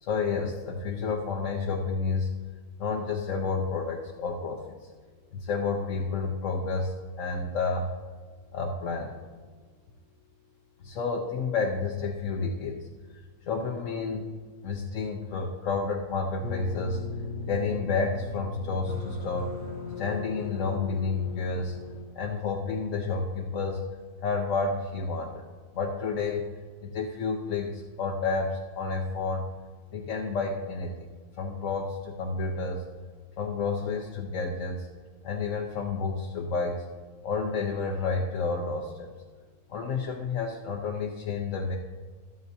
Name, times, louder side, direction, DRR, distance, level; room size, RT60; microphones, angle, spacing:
voice 1, 0.0-2.3 2.8-4.9 5.3-7.9 8.5-9.2 10.8-12.8 13.5-14.3 14.6-17.0 17.5-19.5 20.0-21.8 22.1-23.8 24.2-25.4 25.7-26.5 26.8-29.4 29.9-31.1 31.4-32.9 33.4-34.9 35.2-36.9 37.2-39.1 39.7-41.8, left 4 dB, 60° left, 0 dB, 1.1 m, -30 dB
sound 1, 16.4-22.0, left 4 dB, 25° right, 2.3 m, -37 dB
13.0 x 12.5 x 2.7 m, 1.5 s
omnidirectional pair, 1.7 m